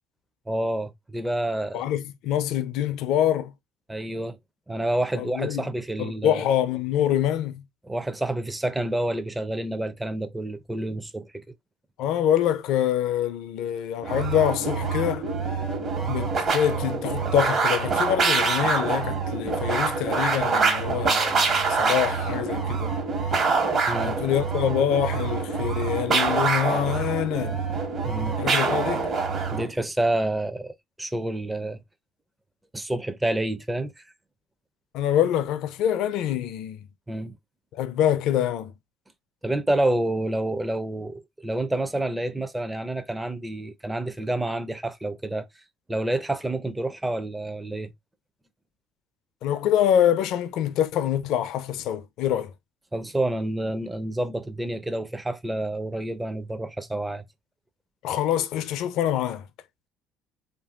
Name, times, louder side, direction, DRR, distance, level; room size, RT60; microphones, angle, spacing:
voice 1, 0.5-1.8 3.9-4.4 4.7-6.4 7.9-11.4 23.9-24.2 28.0-28.4 29.5-31.8 32.7-33.9 37.1-37.3 39.4-45.5 45.9-47.9 52.9-57.2, right 1 dB, 10° right, 0.5 m, -28 dB
voice 2, 1.7-3.5 5.2-5.7 6.0-7.6 12.0-15.2 16.1-23.0 24.0-27.6 28.4-29.1 34.9-36.9 37.7-38.7 49.4-52.5 58.0-59.5, left 10 dB, 70° left, 0.4 m, -25 dB
sound 1, 14.0-29.7, right 4 dB, 45° right, 1.1 m, -25 dB
2.7 x 2.6 x 2.3 m
supercardioid pair, 80°, 0 cm